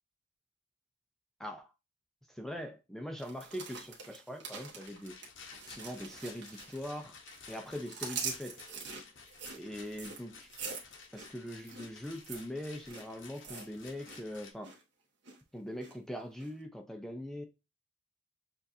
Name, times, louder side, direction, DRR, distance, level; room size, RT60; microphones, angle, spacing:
voice 1, 1.4-1.7 2.3-5.2 5.7-7.2 7.5-8.6 9.6-10.5 11.1-14.8 15.5-17.4, equal, ahead, 0.5 m, -42 dB
sound 1, 3.2-7.0 7.3-14.2 14.5-14.8 15.2-15.9 16.4-16.5, right 5 dB, 55° right, 1.4 m, -44 dB
Rattle, 4.8-14.5, left 5 dB, 60° left, 0.9 m, -53 dB
6.9 x 2.5 x 2.6 m
head